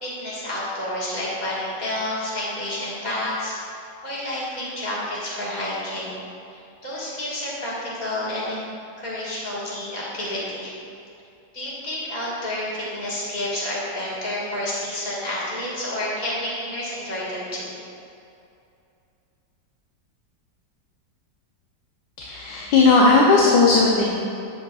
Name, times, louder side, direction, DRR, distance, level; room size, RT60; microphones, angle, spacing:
voice 1, 0.0-3.5 4.0-6.2 6.5-8.6 9.0-10.7 11.5-17.7, left 1 dB, 25° left, -7 dB, 1.6 m, -29 dB
voice 2, 22.2-24.1, left 3 dB, 75° left, -2 dB, 1.4 m, -16 dB
9.0 x 7.4 x 2.4 m, 2.6 s
omnidirectional pair, 2.0 m